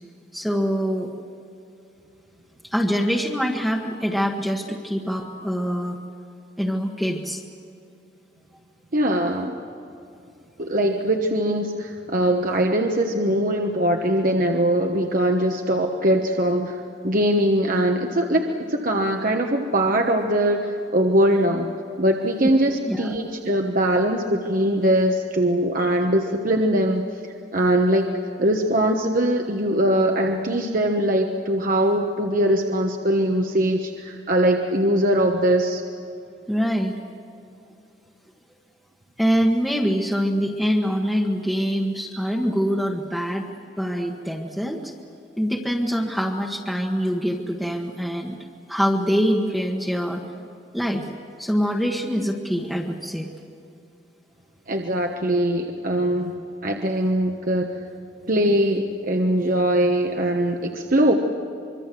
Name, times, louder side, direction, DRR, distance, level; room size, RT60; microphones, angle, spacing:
voice 1, 0.3-1.1 2.7-6.0 6.6-7.4 22.9-23.1 36.5-37.0 39.2-44.9 45.4-48.4 48.7-50.2 50.7-51.1 51.4-53.3, equal, ahead, -1 dB, 1.4 m, -24 dB
voice 2, 8.9-9.6 10.6-16.8 17.0-18.4 18.7-27.0 27.5-28.1 28.4-35.8 54.7-56.3 56.6-57.7 58.3-61.1, right 1 dB, 50° right, 3 dB, 1.3 m, -21 dB
25.5 x 23.5 x 7.6 m, 2.6 s
head